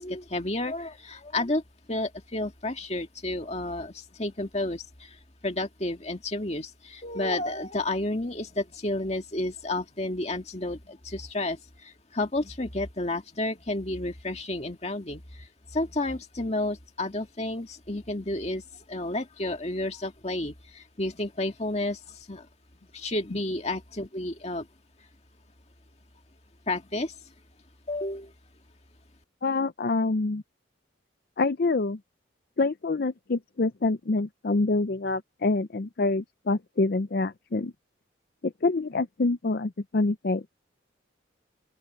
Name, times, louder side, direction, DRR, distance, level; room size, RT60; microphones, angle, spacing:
voice 1, 0.0-1.6 1.9-5.1 5.4-18.6 18.9-22.5 22.9-24.7 26.7-27.1 27.9-28.3, left 2 dB, 35° left, 2.1 m, -31 dB
voice 2, 29.4-30.4 31.4-32.0 32.6-37.7 38.4-40.5, left 3 dB, 50° left, 0.5 m, -26 dB
open air
head